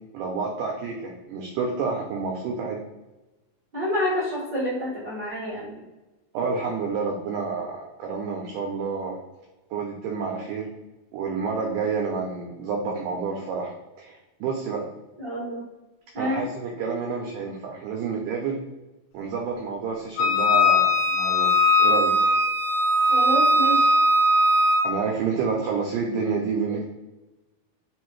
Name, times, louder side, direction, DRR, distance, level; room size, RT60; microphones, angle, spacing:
voice 1, 0.1-2.8 6.3-9.2 9.7-10.7 11.1-14.9 16.2-18.6 19.1-21.5 21.8-22.2 24.8-26.9, right 5 dB, 80° right, 0 dB, 2.0 m, -29 dB
voice 2, 3.7-5.8 15.2-15.6 16.1-16.4 23.1-23.9, left 1 dB, 50° right, -11 dB, 1.3 m, -28 dB
Wind instrument woodwind instrument, 20.2-24.9, left 1 dB, 90° left, 2.5 m, -19 dB
5.5 x 2.6 x 3.0 m, 1.1 s
omnidirectional pair, 4.3 m